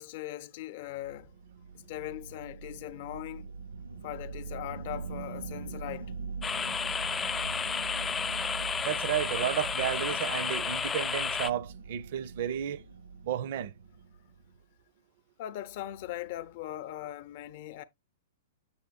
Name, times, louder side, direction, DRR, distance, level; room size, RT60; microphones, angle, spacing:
voice 1, 0.0-1.3 1.7-3.5 4.0-6.1 15.4-17.8, left 13 dB, 50° left, 0.7 m, -40 dB
sound 1, 1.0-14.5, right 4 dB, 80° right, 1.1 m, -42 dB
sound 2, 6.4-11.5, left 6 dB, 15° left, 0.3 m, -32 dB
voice 2, 8.8-12.8 13.2-13.7, right 10 dB, 55° right, 0.6 m, -32 dB
7.0 x 6.8 x 2.3 m
figure-of-eight pair, 105°, 0 cm